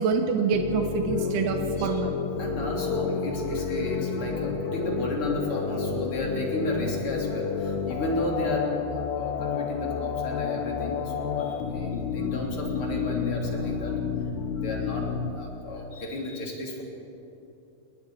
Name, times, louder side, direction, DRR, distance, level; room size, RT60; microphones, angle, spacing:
voice 1, 0.0-2.1 12.6-12.7, right 5 dB, 90° right, 4 dB, 3.1 m, -26 dB
sound 1, 0.5-15.3, left 6 dB, 90° left, 3.2 m, -30 dB
voice 2, 2.4-14.0 14.4-16.8, left 1 dB, 35° left, -1 dB, 3.7 m, -33 dB
29.5 x 20.0 x 4.9 m, 2.9 s
omnidirectional pair, 4.5 m